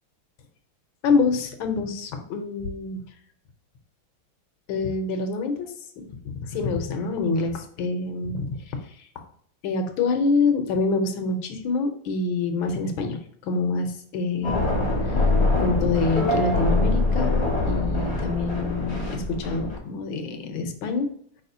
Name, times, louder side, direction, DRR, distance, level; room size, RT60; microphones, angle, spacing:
voice 1, 1.0-3.0 4.7-5.7 6.0-6.1 6.4-9.0 9.6-13.2 13.4-14.6 15.0-15.2 15.6-21.1, left 4 dB, 70° left, 5 dB, 1.4 m, -26 dB
sound 1, 14.4-19.8, left 2 dB, 25° left, 0.8 m, -24 dB
4.8 x 4.2 x 2.6 m, 0.65 s
omnidirectional pair, 2.4 m